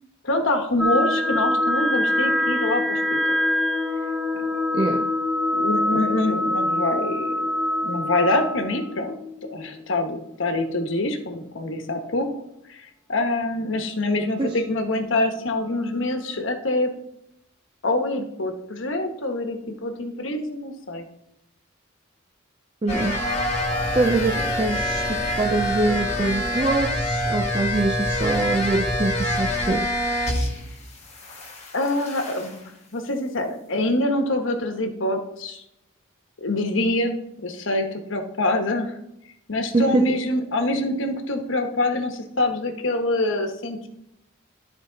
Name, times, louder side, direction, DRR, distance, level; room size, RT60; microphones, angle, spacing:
voice 1, 0.2-3.4 4.4-4.5 5.5-7.5 7.8-9.2 9.5-12.3 12.7-16.9 17.8-21.0 31.7-32.6 32.9-35.6 36.4-39.0 39.5-43.9, left 2 dB, 70° left, 1.1 m, -25 dB
sound 1, 0.8-10.3, left 1 dB, ahead, 0.7 m, -24 dB
voice 2, 4.7-5.1 14.4-14.6 22.8-23.2 23.9-29.9 39.7-40.2, right 2 dB, 25° right, 0.4 m, -24 dB
sound 2, 22.9-30.8 31.0-32.6, left 1 dB, 35° left, 1.6 m, -26 dB
13.0 x 4.4 x 3.9 m
head